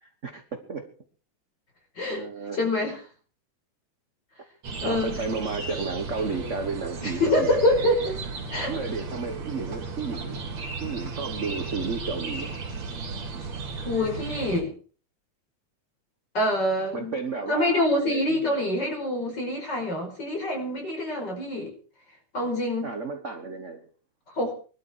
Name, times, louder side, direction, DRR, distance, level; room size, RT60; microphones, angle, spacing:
voice 1, 0.0-0.9 2.1-2.6 4.8-7.6 8.6-10.5 10.8-12.6 13.3-13.4 16.9-18.5 22.8-23.9, right 4 dB, 45° right, 6 dB, 0.9 m, -33 dB
voice 2, 2.6-3.0 4.8-5.2 7.0-8.2 8.5-8.7 13.8-14.7 16.3-17.2 17.5-21.7 22.3-22.9 24.3-24.5, left 1 dB, 35° left, 2 dB, 5.7 m, -25 dB
sound 1, 4.6-14.6, right 4 dB, 65° right, 4.5 m, -35 dB
21.5 x 12.0 x 4.6 m, 0.39 s
omnidirectional pair, 3.4 m